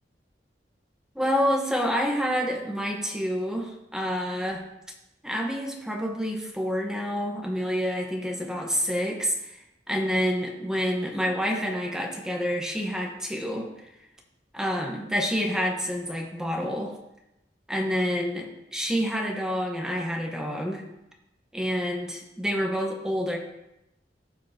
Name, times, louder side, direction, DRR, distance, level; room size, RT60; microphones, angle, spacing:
voice 1, 1.1-4.6 5.2-9.6 9.9-13.7 14.5-16.9 17.7-20.8 21.5-23.4, equal, 5° right, 0 dB, 1.3 m, -28 dB
15.5 x 5.7 x 2.9 m, 0.88 s
head